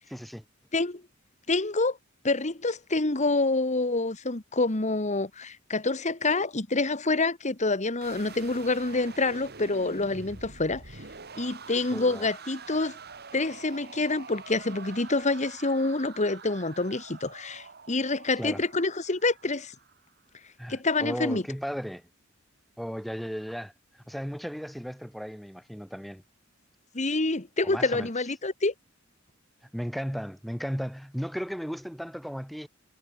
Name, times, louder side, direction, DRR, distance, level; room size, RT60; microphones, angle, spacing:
voice 1, 0.1-0.4 11.9-12.3 18.4-18.6 20.6-22.1 22.8-26.2 27.6-28.1 29.7-32.7, equal, ahead, 6.0 m, -35 dB
voice 2, 1.5-2.0 2.2-10.8 11.3-13.0 13.3-19.7 20.7-21.4 26.9-28.7, left 3 dB, 35° left, 1.7 m, -27 dB
sound 1, 8.0-20.1, right 4 dB, 50° right, 4.0 m, -46 dB
head